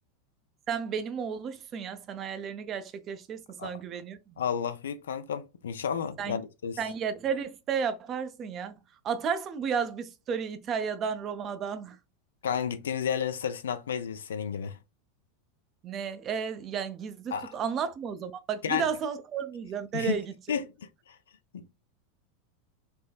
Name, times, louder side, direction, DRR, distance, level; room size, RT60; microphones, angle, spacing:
voice 1, 0.7-4.4 6.2-6.4 6.8-8.7 9.0-12.0 15.8-20.3, right 6 dB, 35° right, 0.4 m, -33 dB
voice 2, 4.4-6.8 12.4-14.8 17.3-17.5 18.6-18.8 19.9-20.2 20.5-20.6 21.5-21.7, left 7 dB, 70° left, 0.3 m, -31 dB
3.4 x 2.0 x 2.3 m
figure-of-eight pair, 85°, 0 cm